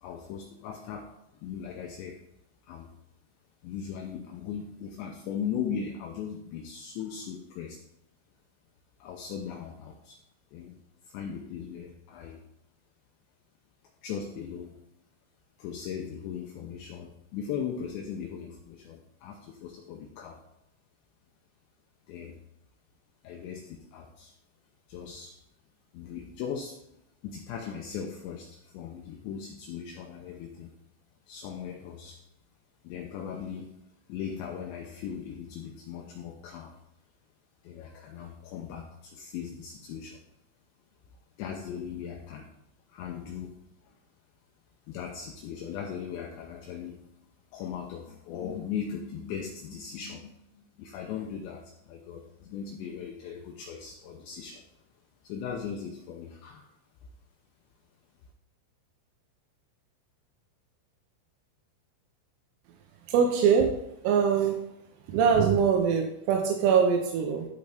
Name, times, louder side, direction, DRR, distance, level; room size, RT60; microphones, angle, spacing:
voice 1, 0.0-2.2 2.6-2.9 3.6-7.8 9.0-10.2 10.5-10.8 11.0-12.4 14.0-14.8 15.6-20.4 22.1-22.4 23.2-24.3 24.9-25.4 25.9-26.8 27.2-30.7 31.3-32.2 32.8-33.7 34.1-36.8 37.6-40.2 41.4-42.5 42.9-43.6 43.8-44.0 44.9-47.1 47.5-54.7 55.2-56.7, left 7 dB, 85° left, 2 dB, 2.6 m, -38 dB
voice 2, 63.1-63.7 64.0-64.6 65.1-67.5, right 6 dB, 85° right, 2 dB, 3.5 m, -23 dB
12.5 x 5.3 x 3.5 m, 0.83 s
omnidirectional pair, 5.9 m